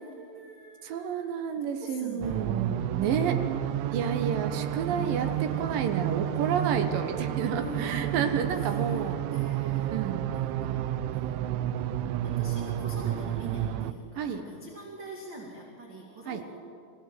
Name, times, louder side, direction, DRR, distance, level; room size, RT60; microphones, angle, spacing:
voice 1, 0.0-2.8 4.8-5.7 7.5-9.0 9.3-10.0 10.3-11.7 12.2-16.6, right 2 dB, 30° right, -2 dB, 2.3 m, -44 dB
voice 2, 0.8-3.4 3.9-9.2 9.9-10.3 14.2-14.4 16.3-16.4, right 7 dB, 70° right, 6 dB, 2.3 m, -30 dB
sound 1, 2.2-13.9, right 12 dB, 85° right, 3.1 m, -30 dB
25.5 x 16.5 x 7.7 m, 2.4 s
omnidirectional pair, 5.3 m